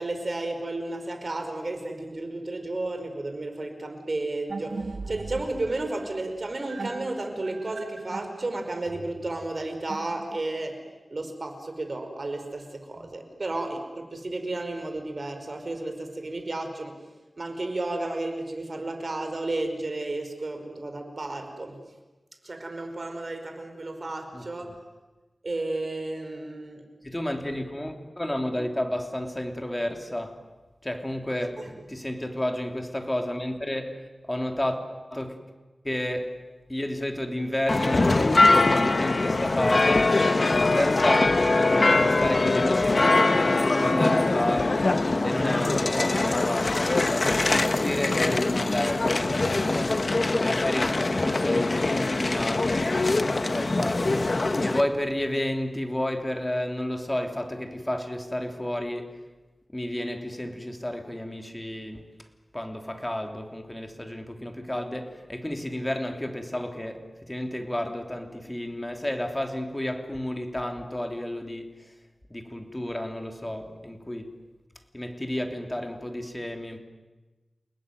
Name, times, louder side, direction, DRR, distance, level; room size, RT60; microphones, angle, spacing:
voice 1, 0.0-4.8 5.1-10.8 11.1-16.9 17.4-21.8 22.4-24.7 25.4-26.9 31.6-31.7, right 2 dB, 50° right, 5.0 m, -32 dB
vibraphone sequence, 4.5-10.7, right 3 dB, 80° right, 2.9 m, -39 dB
voice 2, 27.0-30.4 30.8-34.8 35.1-35.4 35.8-36.4 36.7-44.8 45.2-54.2 54.6-59.2 59.7-62.0 62.5-71.9 72.3-74.4 74.9-76.8, left 1 dB, 15° left, 3.2 m, -31 dB
sound 1, 37.7-54.8, left 2 dB, 50° left, 1.4 m, -23 dB
29.5 x 19.5 x 9.4 m
wide cardioid pair, 80°, 0 cm